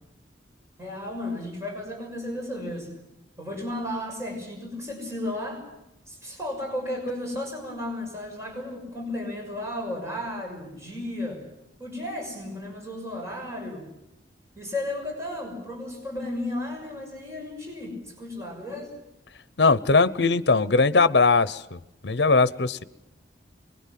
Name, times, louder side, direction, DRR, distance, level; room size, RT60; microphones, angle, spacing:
voice 1, 0.8-2.9 3.4-5.6 6.1-11.4 11.8-13.8 14.6-18.9, left 1 dB, 15° right, 0 dB, 6.5 m, -34 dB
voice 2, 19.6-21.8 22.0-22.8, left 4 dB, 70° left, 16 dB, 0.9 m, -20 dB
25.5 x 22.0 x 7.6 m, 0.91 s
head